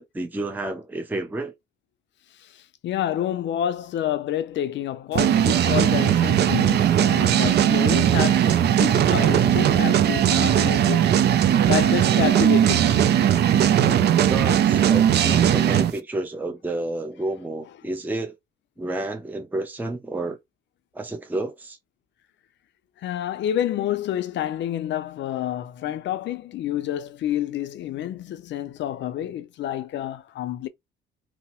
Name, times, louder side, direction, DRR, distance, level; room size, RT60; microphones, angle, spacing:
voice 1, 0.0-1.5 14.3-18.3 18.8-20.4 20.9-21.8, right 2 dB, 10° right, 0.5 m, -30 dB
voice 2, 2.4-11.1 11.7-13.1 23.0-30.7, left 11 dB, 65° left, 0.5 m, -29 dB
sound 1, 5.2-15.9, right 10 dB, 55° right, 0.4 m, -19 dB
2.8 x 2.0 x 2.9 m
cardioid pair, 90°, 20 cm